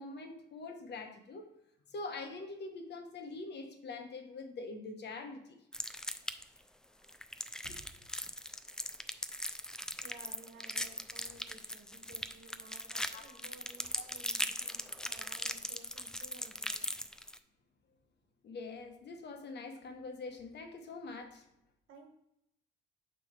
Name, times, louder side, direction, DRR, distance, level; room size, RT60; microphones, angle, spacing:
voice 1, 0.0-1.5 1.9-5.6 7.6-7.9 13.1-13.2 13.9-14.0 18.4-21.5, left 3 dB, 60° left, 5 dB, 1.0 m, -44 dB
sound 1, 5.7-6.6 7.0-17.4, left 1 dB, 5° left, 0.3 m, -39 dB
voice 2, 10.0-16.8 21.9-22.1, right 2 dB, 85° right, 3 dB, 1.3 m, -56 dB
7.0 x 3.1 x 4.7 m, 0.82 s
cardioid pair, 90°, 20 cm